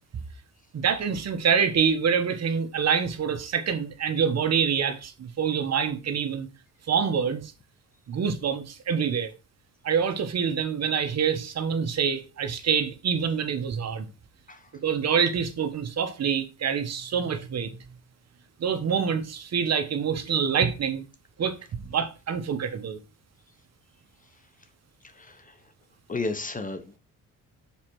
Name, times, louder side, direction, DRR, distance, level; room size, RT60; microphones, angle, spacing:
voice 1, 0.7-6.5 6.9-7.5 8.1-9.3 9.8-14.1 14.8-17.8 18.6-21.0 21.4-21.6 21.8-23.0, right 7 dB, 50° right, 1.1 m, -26 dB
voice 2, 25.1-25.6 26.1-27.0, left 3 dB, 25° left, 1.1 m, -33 dB
7.2 x 4.4 x 4.6 m
cardioid pair, 100°, 34 cm